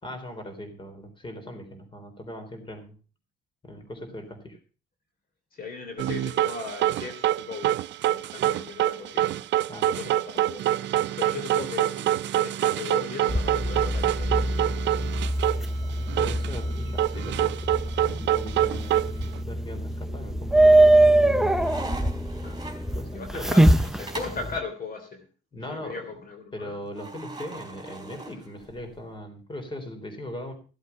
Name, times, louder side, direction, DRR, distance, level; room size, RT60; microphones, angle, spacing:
voice 1, 0.0-2.9 3.6-4.6 9.7-10.0 16.2-17.7 18.0-21.5 22.9-23.6 25.5-26.0 26.5-30.5, left 1 dB, 25° left, 6 dB, 3.7 m, -39 dB
voice 2, 5.5-7.8 8.1-9.3 9.7-10.7 11.2-14.3 15.4-15.5 22.3-22.6 23.1-25.2 25.7-26.9, left 4 dB, 50° left, 5 dB, 3.1 m, -38 dB
sound 1, 6.0-15.6 15.9-16.6 17.0-19.4, right 13 dB, 75° right, 0.5 m, -26 dB
sound 2, 13.3-24.6, right 1 dB, ahead, 0.7 m, -23 dB
sound 3, 19.8-20.4 20.8-24.5 26.9-29.0, right 3 dB, 20° right, 3.6 m, -41 dB
15.5 x 8.3 x 5.8 m, 0.37 s
cardioid pair, 115°, 19 cm